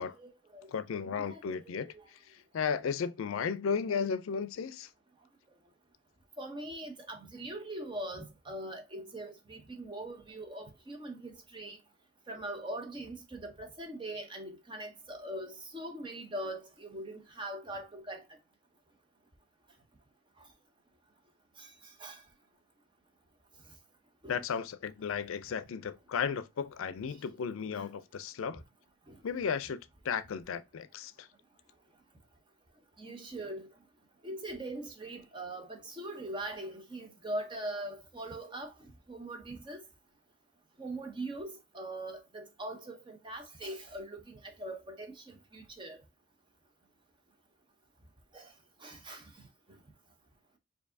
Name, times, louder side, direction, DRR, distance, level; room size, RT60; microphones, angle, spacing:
voice 1, 0.0-0.7 1.1-2.0 6.4-11.8 12.3-18.2 21.6-22.2 24.2-24.4 29.1-29.2 33.0-33.7 34.2-38.7 39.1-39.8 40.8-46.0 48.3-48.5 48.8-49.5, right 1 dB, 25° right, 0.6 m, -42 dB
voice 2, 0.7-4.9 24.3-28.6 29.2-29.8 30.0-31.3, left 6 dB, 90° left, 0.4 m, -34 dB
4.6 x 2.7 x 2.6 m
head